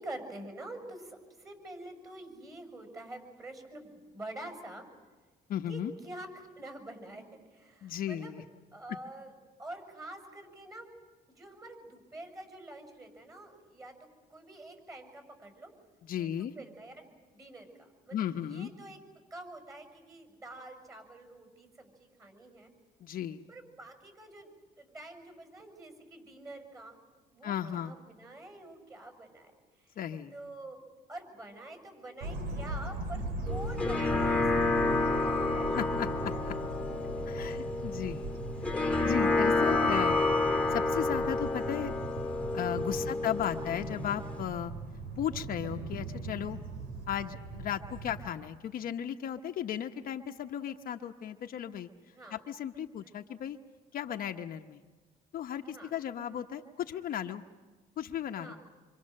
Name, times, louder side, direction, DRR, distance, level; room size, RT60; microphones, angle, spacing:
voice 1, 0.0-4.9 5.7-8.4 8.7-9.3 9.6-10.9 11.3-15.7 16.2-19.0 19.3-22.7 23.5-27.0 27.3-29.5 29.8-30.0 30.3-30.8 31.1-36.4 37.1-37.2 43.0-43.3 52.1-52.4 53.0-53.1 55.6-55.9 58.4-58.6, right 1 dB, 20° right, 6 dB, 6.6 m, -47 dB
voice 2, 5.5-5.9 7.8-8.4 16.0-16.5 18.1-18.7 23.0-23.5 27.4-27.9 30.0-30.3 35.7-36.5 37.3-38.3 39.0-40.2 40.7-41.9 42.3-44.7 45.2-46.6 47.1-51.9 52.3-53.6 53.9-54.8 55.3-57.4 58.0-58.5, left 10 dB, 60° left, 5 dB, 1.0 m, -35 dB
sound 1, 32.2-48.3, right 2 dB, 80° right, 3.2 m, -39 dB
sound 2, 33.5-44.4, left 3 dB, 5° left, 1.7 m, -30 dB
27.0 x 25.5 x 6.6 m, 1.3 s
cardioid pair, 110°, 17 cm